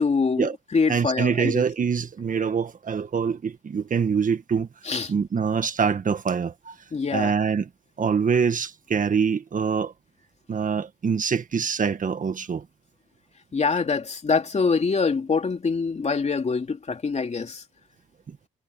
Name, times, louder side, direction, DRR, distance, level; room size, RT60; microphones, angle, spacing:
voice 1, 0.0-1.6 4.8-5.1 6.9-7.3 13.5-17.6, left 4 dB, 35° left, 3.0 m, -24 dB
voice 2, 0.9-4.7 5.1-6.8 7.1-7.7 8.0-9.9 10.5-12.7 18.3-18.4, right 6 dB, 40° right, 1.7 m, -24 dB
cardioid pair, 90°, 20 cm